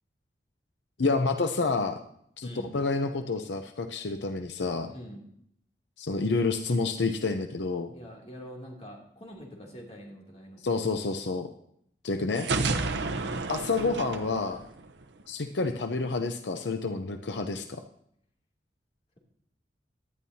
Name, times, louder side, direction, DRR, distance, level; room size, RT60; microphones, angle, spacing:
voice 1, 1.0-2.0 2.4-2.5 2.7-4.9 6.0-7.9 10.6-11.5 12.0-12.5 13.5-14.6 15.3-17.8, left 3 dB, 85° left, 6 dB, 0.7 m, -29 dB
voice 2, 2.4-2.7 4.9-5.2 7.9-10.6 12.9-13.2, equal, 35° left, -2 dB, 2.8 m, -45 dB
sound 1, 12.4-15.2, right 3 dB, 90° right, 0.8 m, -31 dB
18.0 x 11.0 x 2.8 m, 0.70 s
head